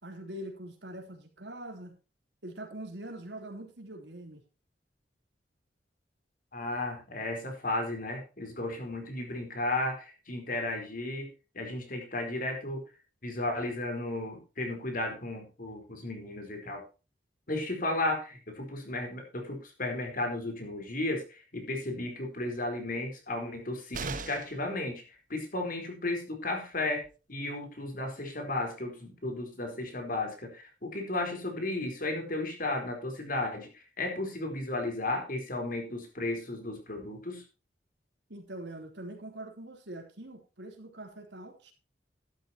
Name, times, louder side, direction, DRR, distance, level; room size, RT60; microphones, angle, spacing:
voice 1, 0.0-1.9 2.4-4.4 8.6-8.7 38.3-41.7, right 1 dB, 80° right, 4 dB, 3.4 m, -43 dB
voice 2, 6.5-11.3 11.5-12.8 13.2-16.8 17.5-25.0 25.3-37.4, left 2 dB, 50° left, 4 dB, 4.2 m, -34 dB
sound 1, 23.9-24.7 26.6-26.7 27.0-27.1, right 4 dB, 50° right, 1.2 m, -38 dB
12.5 x 12.5 x 2.9 m, 0.31 s
head